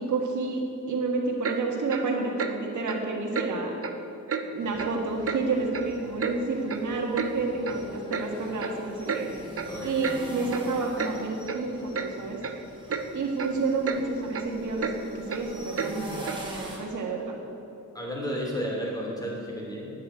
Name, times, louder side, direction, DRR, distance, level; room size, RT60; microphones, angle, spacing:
voice 1, 0.0-3.7 4.5-9.3 9.8-12.4 13.1-17.4, right 3 dB, 70° right, 0 dB, 1.7 m, -30 dB
Clock, 1.4-1.6 1.9-2.1 2.4-2.5 2.9-3.0 3.3-3.5 3.8-4.0 4.3-4.4 4.8-4.9 5.3-5.4 5.7-6.4 6.7-6.8 7.1-7.3 7.6-7.8 8.1-8.3 8.6-8.7 9.1-9.2 9.6-9.7 10.0-10.2 10.5-10.6 11.0-11.1 11.5-11.6 11.9-12.1 12.4-12.6 12.9-13.0 13.4-13.5 13.8-14.0 14.3-14.4 14.8-14.9 15.3-15.4 15.8-15.9 16.3-16.4, right 6 dB, 45° right, 0.8 m, -31 dB
sound 1, 4.6-16.8, right 1 dB, 15° right, 2.6 m, -44 dB
voice 2, 9.7-10.0 17.9-19.9, equal, 10° left, -3 dB, 3.1 m, -32 dB
8.7 x 8.0 x 9.3 m, 2.8 s
wide cardioid pair, 125°, 31 cm